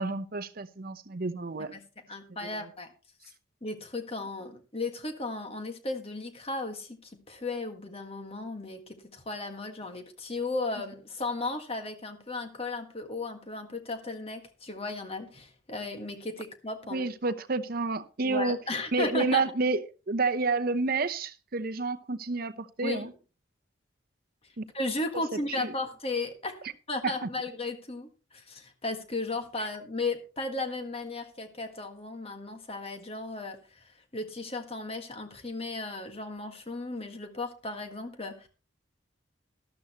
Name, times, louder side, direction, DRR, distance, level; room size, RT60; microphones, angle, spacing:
voice 1, 0.0-1.7 16.9-18.6 18.9-23.1 24.6-24.7 25.6-25.7 27.0-27.3, right 3 dB, 50° right, 0.8 m, -29 dB
voice 2, 2.1-2.9 3.6-17.1 18.2-19.4 22.8-23.1 24.7-38.5, left 2 dB, 30° left, 1.7 m, -35 dB
13.0 x 12.5 x 3.0 m
head